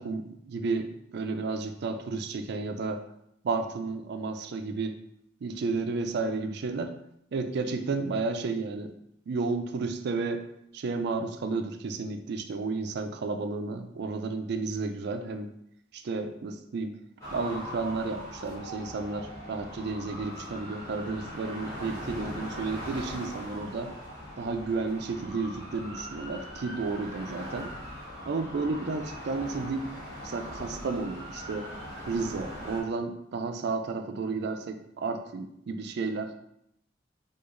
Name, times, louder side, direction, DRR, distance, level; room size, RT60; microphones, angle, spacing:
voice 1, 0.0-3.0 3.4-5.0 5.4-7.0 7.3-8.9 9.3-10.4 10.7-15.5 15.9-17.0 17.3-23.9 24.4-27.7 28.3-29.9 30.2-31.7 32.1-36.4, right 3 dB, 60° right, 7 dB, 0.4 m, -32 dB
sound 1, 17.2-32.8, equal, 20° left, 1.3 m, -41 dB
4.7 x 2.4 x 2.5 m, 0.77 s
head